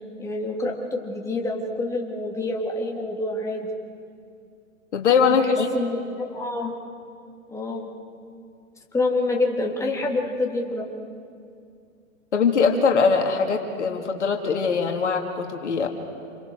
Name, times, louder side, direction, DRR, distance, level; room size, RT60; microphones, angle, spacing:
voice 1, 0.2-3.7 5.3-5.5 5.7-6.8 7.5-7.9 8.9-10.9, left 2 dB, 5° left, -1 dB, 3.3 m, -27 dB
voice 2, 4.9-5.7 12.3-15.9, left 5 dB, 60° left, 3 dB, 2.8 m, -21 dB
29.0 x 28.0 x 6.4 m, 2.4 s
figure-of-eight pair, 115°, 40 cm